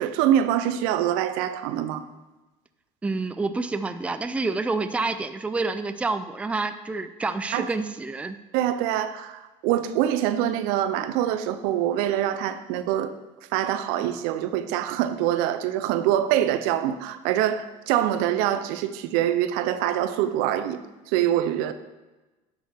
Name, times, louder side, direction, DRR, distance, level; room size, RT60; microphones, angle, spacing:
voice 1, 0.0-2.0 7.5-7.7 8.5-13.1 13.5-20.8 21.1-21.7, right 11 dB, 80° right, 11 dB, 0.6 m, -24 dB
voice 2, 3.0-8.4, right 3 dB, 10° right, 9 dB, 0.4 m, -28 dB
10.5 x 6.1 x 3.5 m, 1.1 s
supercardioid pair, 115°, 15 cm